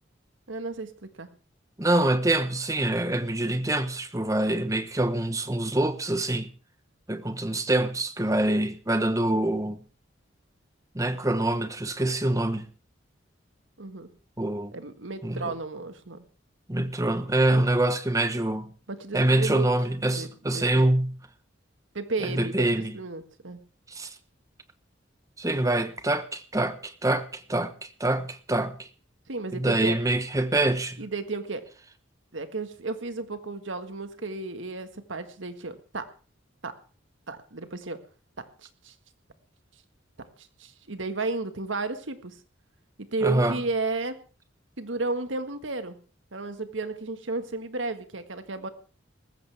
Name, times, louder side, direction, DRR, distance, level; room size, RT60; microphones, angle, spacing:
voice 1, 0.5-1.3 13.8-14.1 14.7-16.2 18.9-19.7 20.1-20.3 20.5-20.9 21.9-23.6 29.3-30.0 31.0-31.6 32.3-36.1 36.6-36.7 37.3-38.0 38.4-38.9 40.4-42.4 43.0-44.2 44.8-46.0 46.3-48.7, right 3 dB, 85° right, 1.7 m, -33 dB
voice 2, 1.8-6.5 7.1-9.8 10.9-12.7 14.4-14.7 15.2-15.5 16.7-18.7 19.1-21.2 22.2-22.9 23.9-24.1 25.4-27.7 28.0-28.9 29.5-31.0 43.2-43.6, right 1 dB, 15° right, 1.1 m, -25 dB
19.5 x 15.0 x 3.5 m
head